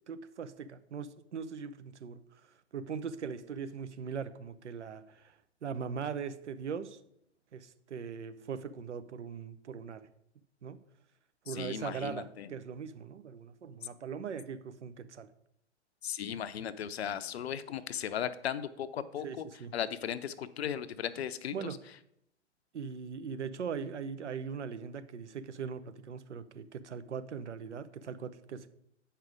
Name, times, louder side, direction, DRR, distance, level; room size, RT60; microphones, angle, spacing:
voice 1, 0.1-2.4 2.7-5.3 5.6-7.0 7.5-10.1 10.6-10.8 11.5-15.3 19.2-19.7 21.5-21.8 22.7-28.7, right 6 dB, 75° right, 0.8 m, -40 dB
voice 2, 11.5-12.5 16.0-19.4 19.7-21.8, left 9 dB, 60° left, 0.7 m, -37 dB
8.2 x 5.6 x 4.9 m
figure-of-eight pair, 115°, 36 cm